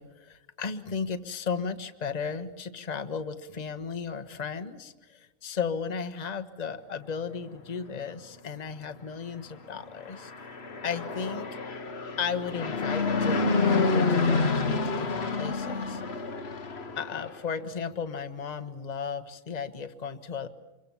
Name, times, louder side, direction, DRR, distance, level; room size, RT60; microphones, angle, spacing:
voice 1, 0.0-10.3 10.8-11.5 12.2-16.0 17.0-20.5, left 6 dB, 30° left, 8 dB, 1.2 m, -35 dB
Fixed-wing aircraft airplane, 10.0-17.4, left 3 dB, 50° left, 1.3 m, -28 dB
27.5 x 23.0 x 7.1 m, 1.1 s
omnidirectional pair, 1.5 m